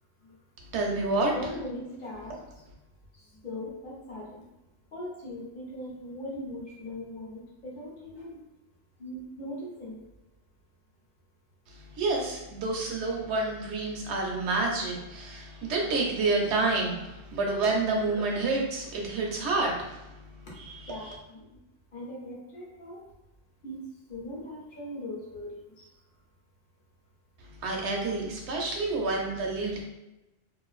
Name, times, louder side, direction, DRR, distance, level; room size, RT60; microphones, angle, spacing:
voice 1, 0.7-1.3 12.0-20.0 20.6-21.1 27.6-29.8, right 3 dB, 70° right, 0 dB, 0.9 m, -29 dB
voice 2, 1.3-2.4 3.4-4.3 4.9-8.4 9.0-10.0 20.9-21.4 21.9-23.0 23.6-23.8 24.1-25.6, left 1 dB, 50° left, -4 dB, 0.8 m, -39 dB
2.5 x 2.4 x 2.3 m, 0.96 s
omnidirectional pair, 1.3 m